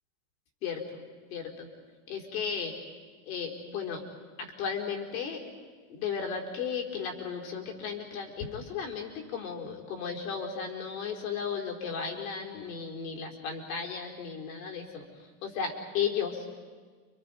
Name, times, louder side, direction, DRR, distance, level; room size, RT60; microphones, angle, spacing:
voice 1, 0.6-1.0 1.3-1.7 2.1-2.7 3.3-4.0 4.4-5.4 5.9-16.4, left 6 dB, 70° left, 1 dB, 4.8 m, -35 dB
30.0 x 26.0 x 5.3 m, 1.5 s
supercardioid pair, 160°, 43 cm